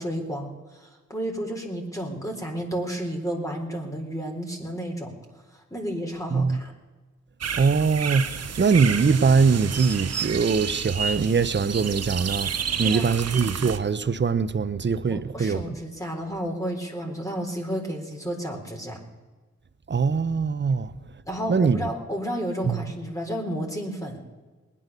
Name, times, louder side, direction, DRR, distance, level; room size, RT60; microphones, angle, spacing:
voice 1, 0.0-5.1 5.5-6.7 12.8-13.3 15.1-19.0 21.3-24.2, equal, 10° left, 4.0 m, -32 dB
sound 1, 7.4-13.8, right 7 dB, 55° right, 1.2 m, -30 dB
voice 2, 7.6-8.3 8.6-15.6 19.9-20.9 21.5-21.8 22.7-22.8, right 5 dB, 35° right, 1.0 m, -22 dB
20.0 x 10.5 x 6.9 m
supercardioid pair, 40°, 30 cm